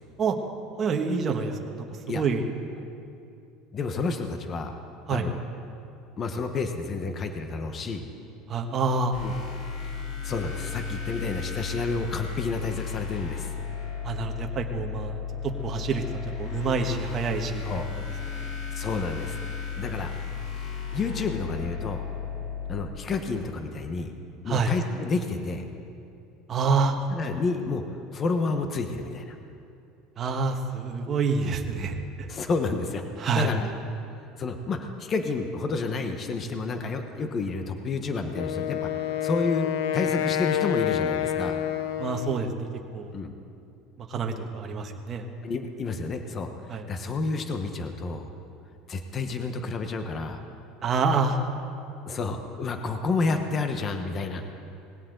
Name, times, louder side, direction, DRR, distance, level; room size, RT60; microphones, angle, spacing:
voice 1, 0.8-1.9 2.1-2.4 5.1-5.3 8.5-9.1 14.0-16.0 16.4-18.1 18.4-18.6 19.8-19.9 24.5-24.7 26.5-27.0 30.2-32.3 33.2-33.5 42.0-42.7 42.9-43.1 44.0-45.3 46.7-46.8 50.8-51.4, right 4 dB, 30° right, 3 dB, 1.4 m, -27 dB
voice 2, 3.7-4.8 5.1-5.4 6.2-8.0 9.2-9.3 10.2-13.5 17.6-17.9 18.7-19.4 19.8-20.1 20.9-22.1 22.7-24.1 24.4-25.7 27.1-29.4 32.3-33.0 33.3-33.7 34.4-41.6 43.1-43.3 45.4-48.3 48.9-50.4 52.1-54.4, left 4 dB, 30° left, 6 dB, 1.1 m, -30 dB
sound 1, 9.1-22.8, left 7 dB, 55° left, 2.9 m, -34 dB
Wind instrument woodwind instrument, 38.3-42.6, left 10 dB, 80° left, 0.7 m, -28 dB
19.5 x 17.0 x 3.9 m, 2.6 s
supercardioid pair, 135°, 0 cm